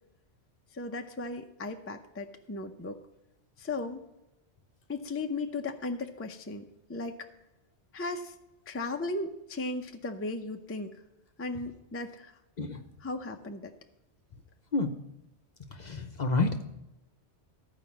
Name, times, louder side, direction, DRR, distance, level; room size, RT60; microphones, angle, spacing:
voice 1, 0.7-3.0 3.6-4.1 4.9-7.3 7.9-8.4 8.7-11.0 11.4-12.4 13.0-13.7, left 2 dB, 15° left, 5 dB, 0.5 m, -36 dB
voice 2, 15.7-16.7, left 3 dB, 45° left, 6 dB, 0.8 m, -29 dB
14.0 x 4.9 x 7.2 m, 0.93 s
omnidirectional pair, 1.2 m